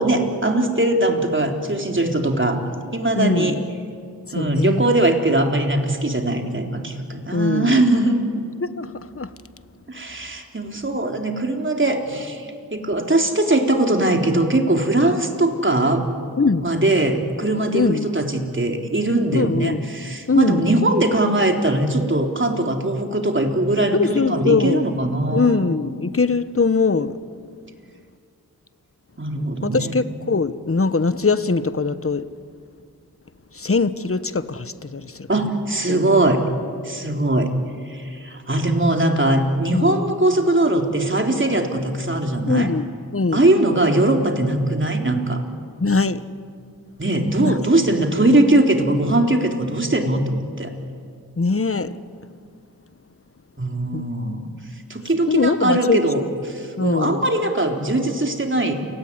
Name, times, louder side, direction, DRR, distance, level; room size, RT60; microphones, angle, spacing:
voice 1, 0.0-2.6 2.9-3.6 4.3-8.2 9.9-16.0 16.6-25.6 29.2-29.9 35.3-36.4 36.8-37.5 37.9-42.7 43.3-45.4 47.0-50.7 53.6-54.5 54.9-58.7, right 1 dB, 35° right, 3 dB, 3.7 m, -20 dB
voice 2, 3.2-3.6 4.3-4.8 7.3-7.8 8.6-9.3 16.4-16.7 17.7-18.1 19.3-19.8 20.3-20.8 23.9-24.9 25.3-27.2 29.6-32.3 33.5-35.3 35.9-36.2 39.7-40.0 42.5-43.5 45.8-46.2 47.4-47.6 51.4-51.9 53.9-54.0 55.3-56.0 56.8-57.3, left 4 dB, 40° left, 13 dB, 1.2 m, -21 dB
29.5 x 18.5 x 9.8 m, 2.3 s
cardioid pair, 40°, 36 cm